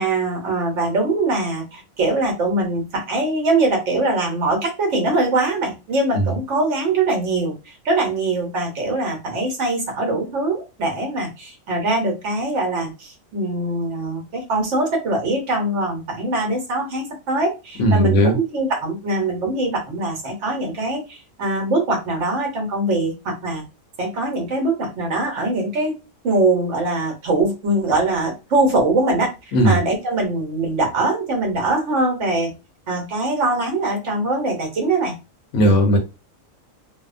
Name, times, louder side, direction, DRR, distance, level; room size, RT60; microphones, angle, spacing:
voice 1, 0.0-23.6 24.0-25.9 26.2-32.5 32.9-35.1 35.6-35.8, right 2 dB, 65° right, 2 dB, 1.1 m, -22 dB
voice 2, 17.8-18.4 29.5-29.8 35.5-36.0, right 1 dB, 70° left, 3 dB, 1.0 m, -16 dB
2.7 x 2.1 x 2.4 m, 0.28 s
omnidirectional pair, 1.3 m